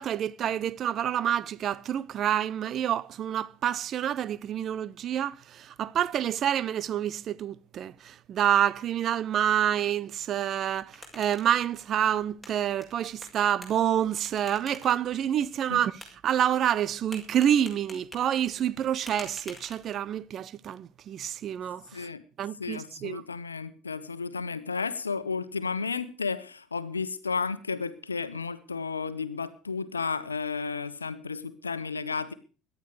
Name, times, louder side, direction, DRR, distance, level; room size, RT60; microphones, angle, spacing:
voice 1, 0.0-22.1 22.4-23.2, right 10 dB, 40° right, 0.7 m, -28 dB
sound 1, 10.6-20.2, left 1 dB, 5° right, 6.6 m, -50 dB
voice 2, 21.9-22.2 22.6-32.3, left 5 dB, 80° left, 1.1 m, -33 dB
18.0 x 12.0 x 4.8 m
figure-of-eight pair, 65°, 0 cm